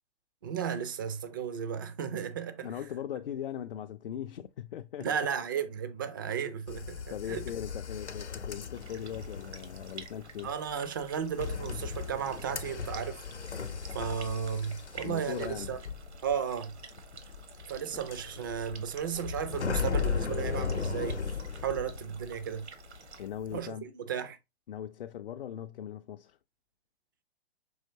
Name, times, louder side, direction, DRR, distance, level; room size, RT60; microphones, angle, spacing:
voice 1, 0.4-2.7 5.0-7.4 10.4-13.2 13.9-15.8 16.2-16.7 17.7-21.4 21.6-22.7 23.5-24.4, right 8 dB, 20° right, 0.3 m, -34 dB
voice 2, 2.6-5.3 7.1-10.5 15.0-15.7 23.2-23.8 24.7-26.4, left 10 dB, 55° left, 0.5 m, -39 dB
sound 1, 6.7-22.6 22.9-23.6, left 6 dB, 85° left, 0.8 m, -37 dB
sound 2, 8.7-23.3, right 6 dB, 75° right, 1.0 m, -51 dB
5.6 x 2.9 x 2.7 m
figure-of-eight pair, 125°, 33 cm